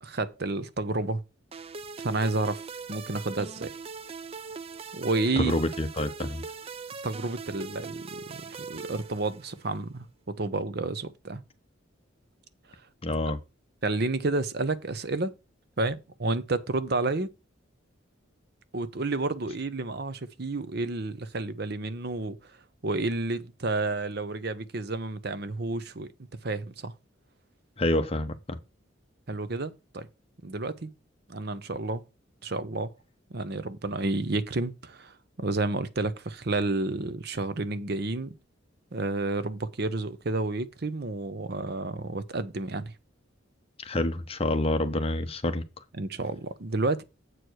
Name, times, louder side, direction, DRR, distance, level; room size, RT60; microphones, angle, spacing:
voice 1, 0.0-1.2 2.0-2.6 2.9-3.8 4.9-5.5 7.0-11.4 13.8-15.3 15.8-17.3 18.7-22.4 22.8-26.1 26.4-26.9 29.3-30.1 30.4-30.9 31.3-32.0 32.4-32.9 33.3-38.4 38.9-42.9 46.0-47.0, right 2 dB, 50° right, 0.8 m, -30 dB
sound 1, 1.5-9.8, right 5 dB, 30° right, 0.4 m, -41 dB
voice 2, 5.4-6.4 13.0-13.4 27.8-28.6 43.8-45.6, left 1 dB, 30° left, 0.9 m, -27 dB
8.1 x 4.6 x 6.3 m
head